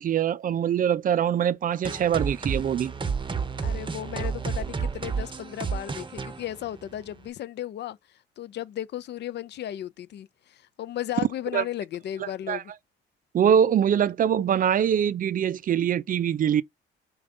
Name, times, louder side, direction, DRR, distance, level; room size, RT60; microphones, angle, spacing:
voice 1, 0.0-2.9 11.5-11.6 12.5-12.6 13.3-16.6, right 9 dB, 45° right, 0.4 m, -23 dB
sound 1, 1.8-7.3, right 5 dB, 25° right, 0.8 m, -31 dB
voice 2, 3.6-12.7, left 12 dB, 60° left, 0.4 m, -35 dB
5.1 x 2.3 x 3.7 m
cardioid pair, 90°, 20 cm